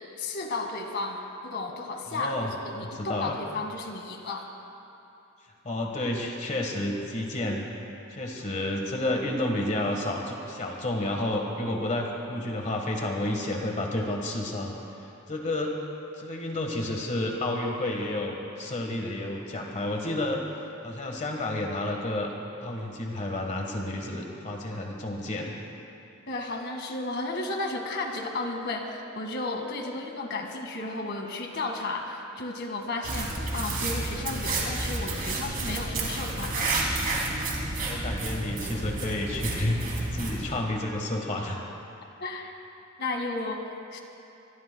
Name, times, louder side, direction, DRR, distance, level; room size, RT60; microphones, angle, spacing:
voice 1, 0.2-4.5 26.3-36.8 42.2-42.5 43.0-44.0, left 2 dB, 55° left, 2 dB, 2.0 m, -33 dB
voice 2, 2.1-2.5 2.8-3.4 5.6-7.7 8.1-14.8 15.3-15.7 16.2-20.4 20.8-22.3 22.6-25.5 37.8-41.6, left 1 dB, 35° left, 1 dB, 1.5 m, -30 dB
sound 1, 33.0-40.5, right 2 dB, 45° right, 3.0 m, -30 dB
26.5 x 21.0 x 2.3 m, 2.8 s
head